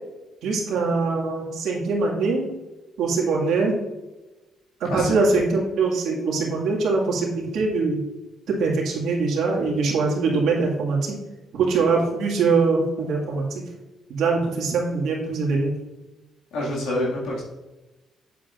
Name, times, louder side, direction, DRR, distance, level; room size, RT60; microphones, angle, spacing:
voice 1, 0.4-2.5 3.0-3.8 4.8-8.0 8.5-11.2 11.5-13.6 14.1-15.7, right 4 dB, 75° right, -2 dB, 2.0 m, -23 dB
voice 2, 16.5-17.4, left 1 dB, 85° left, -5 dB, 2.1 m, -26 dB
8.1 x 7.3 x 2.5 m, 1.1 s
cardioid pair, 90°, 0 cm